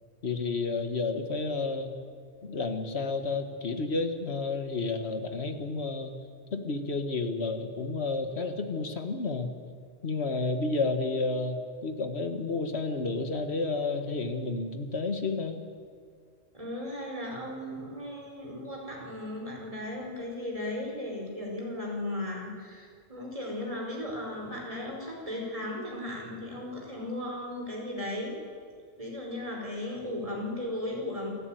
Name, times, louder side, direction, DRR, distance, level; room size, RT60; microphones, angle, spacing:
voice 1, 0.2-2.0 2.4-6.2 6.5-9.5 10.0-15.6, left 3 dB, 80° left, 7 dB, 1.9 m, -31 dB
voice 2, 16.5-28.3 29.0-31.3, left 1 dB, 30° right, -1 dB, 5.0 m, -36 dB
27.5 x 12.5 x 9.3 m, 2.1 s
omnidirectional pair, 1.1 m